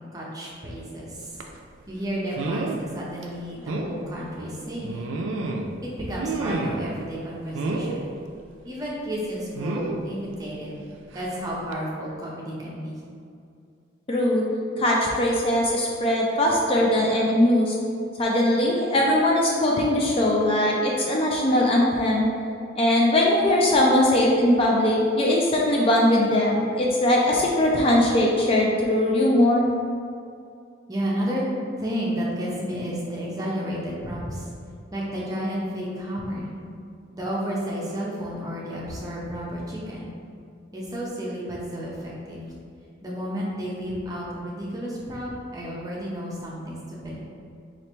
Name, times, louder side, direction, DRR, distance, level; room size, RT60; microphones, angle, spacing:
voice 1, 0.1-1.4 1.9-5.0 5.8-8.1 8.6-10.8 11.1-13.0 30.9-31.4 31.8-34.5 34.9-36.5 37.1-40.1 40.7-42.4 43.0-47.2, equal, 20° right, -5 dB, 0.6 m, -32 dB
sound 1, 1.4-1.6 2.3-2.8 3.2-3.3 3.7-3.9 4.8-5.7 6.2-6.9 7.5-8.0 9.5-10.0 11.1-11.3 11.7-11.8, right 3 dB, 85° right, 0.4 m, -29 dB
voice 2, 14.1-14.4 14.8-17.8 18.2-22.3 22.8-29.6, left 1 dB, 30° left, -2 dB, 0.3 m, -20 dB
3.1 x 2.5 x 4.2 m, 2.4 s
head